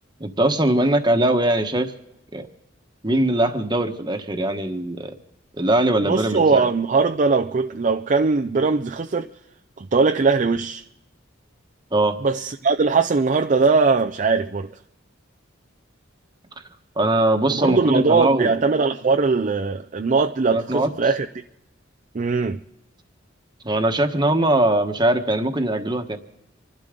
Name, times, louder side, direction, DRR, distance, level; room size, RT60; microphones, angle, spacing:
voice 1, 0.2-1.9 2.3-2.5 3.0-5.1 5.6-6.7 11.9-12.2 17.0-18.5 20.5-20.9 23.6-26.2, right 1 dB, 20° right, 1.2 m, -21 dB
voice 2, 6.1-9.3 9.8-10.8 12.2-14.7 17.5-21.3 22.1-22.6, right 4 dB, 40° right, 0.5 m, -20 dB
26.5 x 12.0 x 3.7 m
head